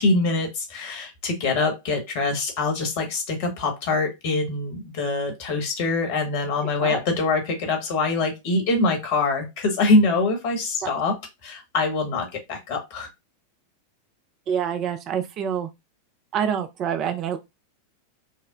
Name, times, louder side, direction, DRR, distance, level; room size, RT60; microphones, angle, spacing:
voice 1, 0.0-11.2 11.4-13.1, left 3 dB, 50° left, 1.3 m, -24 dB
voice 2, 6.6-7.0 10.8-10.9 14.5-15.7 16.3-17.4, right 8 dB, 35° right, 0.5 m, -27 dB
5.6 x 2.1 x 2.4 m
figure-of-eight pair, 90°, 0 cm